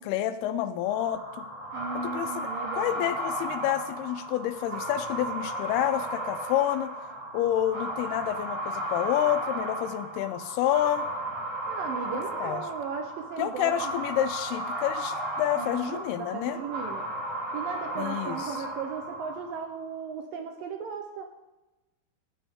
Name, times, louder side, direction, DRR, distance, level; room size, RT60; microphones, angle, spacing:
voice 1, 0.0-1.5 2.0-2.5 2.7-6.9 7.3-11.1 12.4-12.6 13.4-16.6 18.0-18.6, left 12 dB, 80° left, 11 dB, 2.4 m, -29 dB
sound 1, 0.8-19.7, right 1 dB, 30° right, 3.9 m, -35 dB
voice 2, 1.7-3.0 11.7-13.9 15.6-17.1 17.5-21.3, right 5 dB, 75° right, 5 dB, 2.2 m, -36 dB
16.5 x 7.7 x 3.6 m, 1.1 s
omnidirectional pair, 4.7 m